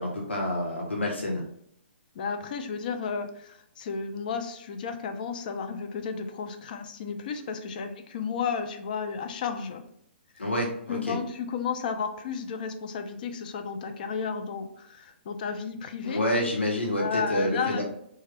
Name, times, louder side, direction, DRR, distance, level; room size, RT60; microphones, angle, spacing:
voice 1, 0.0-1.4 10.4-11.2 16.0-17.8, left 1 dB, 90° left, -1 dB, 0.7 m, -28 dB
voice 2, 2.1-9.8 10.9-16.2 17.0-17.8, left 6 dB, 45° left, 6 dB, 0.5 m, -33 dB
3.2 x 2.2 x 3.3 m, 0.71 s
figure-of-eight pair, 125°, 6 cm